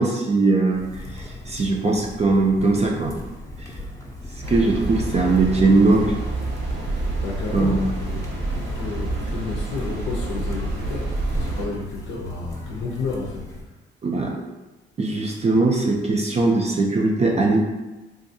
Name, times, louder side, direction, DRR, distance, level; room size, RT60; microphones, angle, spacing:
voice 1, 0.0-3.2 4.5-6.2 7.5-7.8 14.0-14.4 15.0-17.6, right 3 dB, 35° right, 0 dB, 0.5 m, -20 dB
sound 1, 0.7-13.6, equal, 15° left, 0.6 m, -37 dB
sound 2, 4.4-11.7, right 2 dB, 70° right, 1.0 m, -28 dB
voice 2, 7.2-8.2 8.5-13.5, left 3 dB, 75° left, -3 dB, 0.6 m, -31 dB
3.6 x 2.5 x 2.7 m, 1.1 s
cardioid pair, 90°, 20 cm